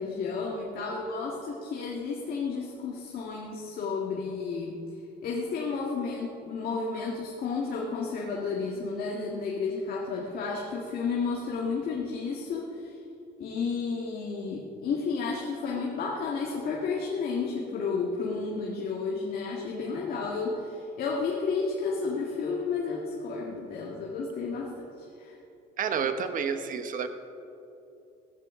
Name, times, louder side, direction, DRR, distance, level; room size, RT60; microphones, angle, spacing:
voice 1, 0.0-4.8 5.2-13.0 13.4-25.4, left 4 dB, 60° left, -2 dB, 1.9 m, -32 dB
voice 2, 25.8-27.1, right 6 dB, 50° right, 8 dB, 1.2 m, -29 dB
16.5 x 14.5 x 3.8 m, 2.7 s
cardioid pair, 110°, 17 cm